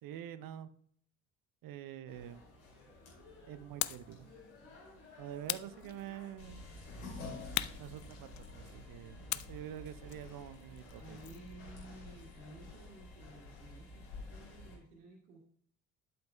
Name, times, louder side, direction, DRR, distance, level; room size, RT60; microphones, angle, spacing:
voice 1, 0.0-0.7 1.6-2.4 3.5-4.3 5.2-6.7 7.8-11.2, right 11 dB, 50° right, 14 dB, 0.7 m, -46 dB
sound 1, 2.1-14.8, left 2 dB, 85° left, 2.5 m, -50 dB
sound 2, 3.8-4.1 5.5-6.4 7.5-8.7 9.3-11.5, left 15 dB, 45° left, 0.5 m, -40 dB
voice 2, 10.9-15.4, right 2 dB, 70° right, -1 dB, 1.6 m, -54 dB
11.5 x 5.4 x 2.2 m, 0.63 s
figure-of-eight pair, 45°, 43 cm